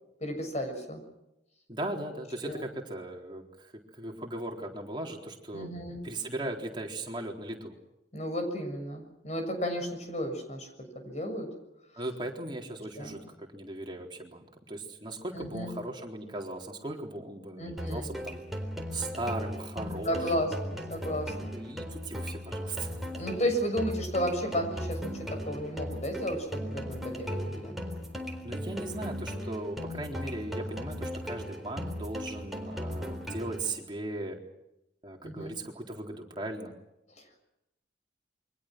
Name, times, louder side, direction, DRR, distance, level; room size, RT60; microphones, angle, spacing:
voice 1, 0.2-1.0 2.4-2.6 5.5-6.0 8.1-11.5 13.0-13.2 15.3-15.7 17.6-18.2 20.1-21.5 23.2-27.8 30.0-30.1 35.2-35.6 37.2-37.4, equal, 40° left, 5 dB, 6.9 m, -33 dB
voice 2, 1.7-7.8 12.0-18.4 18.9-20.8 21.3-22.9 28.4-34.4 35.0-36.7, right 1 dB, 25° right, 1 dB, 4.0 m, -38 dB
sound 1, 17.8-33.8, equal, ahead, 4.1 m, -37 dB
29.0 x 24.0 x 6.3 m, 0.87 s
head